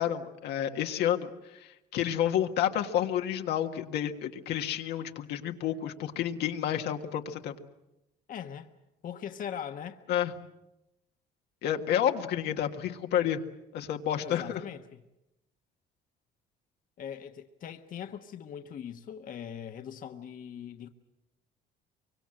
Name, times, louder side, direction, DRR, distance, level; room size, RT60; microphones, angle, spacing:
voice 1, 0.0-7.5 10.1-10.3 11.6-13.4 13.7-14.6, left 10 dB, 80° left, 1.7 m, -30 dB
voice 2, 8.3-8.7 9.0-10.0 14.2-15.0 17.0-20.9, left 8 dB, 55° left, 1.3 m, -41 dB
24.0 x 24.0 x 7.7 m
cardioid pair, 110°, 17 cm